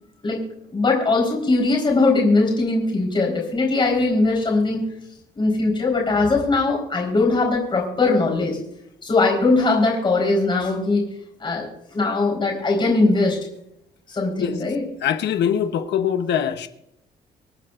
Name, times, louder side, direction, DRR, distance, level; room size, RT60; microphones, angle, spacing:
voice 1, 0.7-4.8 5.4-8.6 9.0-11.1 11.4-13.4 14.1-14.8, left 3 dB, 25° left, 4.2 m, -20 dB
voice 2, 15.0-16.7, left 9 dB, 80° left, 1.0 m, -22 dB
26.5 x 9.1 x 2.5 m
cardioid pair, 155°, 18 cm